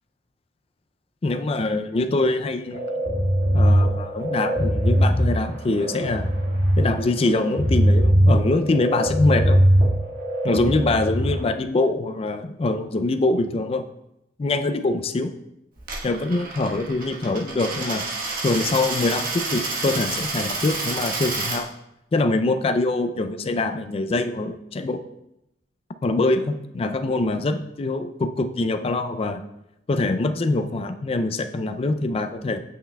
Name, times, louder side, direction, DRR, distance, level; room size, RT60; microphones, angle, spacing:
voice 1, 1.2-2.9 3.5-6.3 6.8-9.6 10.4-13.8 14.4-15.3 16.0-18.1 18.4-21.7 22.1-25.0 26.0-29.4 29.9-32.6, left 2 dB, 35° left, 9 dB, 0.3 m, -24 dB
sound 1, 2.7-11.3, equal, 80° right, 1.9 m, -20 dB
Coin (dropping), 15.8-21.6, right 3 dB, 50° right, 1.2 m, -29 dB
8.5 x 5.5 x 2.2 m, 0.86 s
head